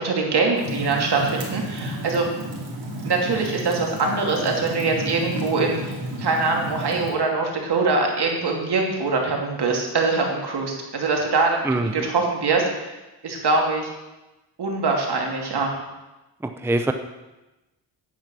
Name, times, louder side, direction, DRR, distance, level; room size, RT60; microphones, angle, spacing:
voice 1, 0.0-2.3 3.0-5.9 6.2-12.9 13.2-13.9 14.6-15.7, right 3 dB, 60° right, 1 dB, 2.7 m, -23 dB
Fire, 0.6-7.1, right 1 dB, 90° right, 2.8 m, -32 dB
voice 2, 11.6-12.1 16.4-16.9, right 2 dB, 5° right, 7 dB, 0.6 m, -24 dB
9.5 x 8.8 x 6.2 m, 1.0 s
cardioid pair, 90°, 44 cm